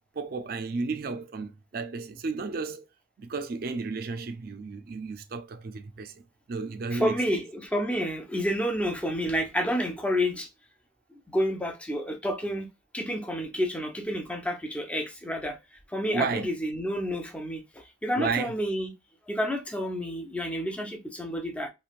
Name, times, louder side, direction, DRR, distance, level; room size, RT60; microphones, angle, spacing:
voice 1, 0.1-2.9 3.2-6.2 6.5-7.4 16.1-16.5 18.2-18.5, right 4 dB, 55° right, 0.4 m, -33 dB
voice 2, 6.9-10.5 11.3-12.7 12.9-15.6 15.9-18.9 19.3-21.7, equal, 5° left, 0.5 m, -29 dB
3.1 x 2.5 x 2.4 m
head